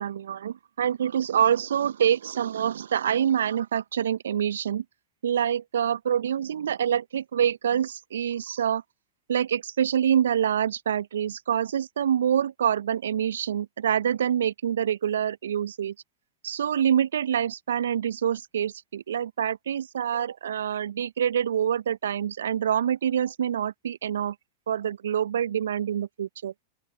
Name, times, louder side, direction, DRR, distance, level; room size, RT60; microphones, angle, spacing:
voice 1, 0.0-4.8 5.2-8.8 9.3-15.9 16.4-24.3 24.7-26.5, right 9 dB, 70° right, 1.0 m, -26 dB
open air
figure-of-eight pair, 90°, 0 cm